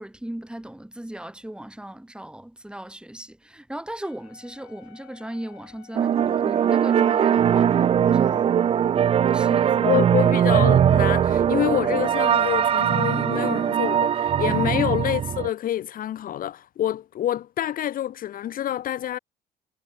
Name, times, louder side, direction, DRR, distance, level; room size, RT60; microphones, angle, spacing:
voice 1, 0.0-8.5 9.3-10.0 14.6-14.9, right 1 dB, 5° right, 3.0 m, -37 dB
Wind instrument woodwind instrument, 4.0-8.2, left 24 dB, 85° left, 3.5 m, -53 dB
sound 1, 5.9-15.5, right 9 dB, 35° right, 0.4 m, -20 dB
voice 2, 9.8-19.2, left 11 dB, 55° left, 0.8 m, -27 dB
supercardioid pair, 85°, 18 cm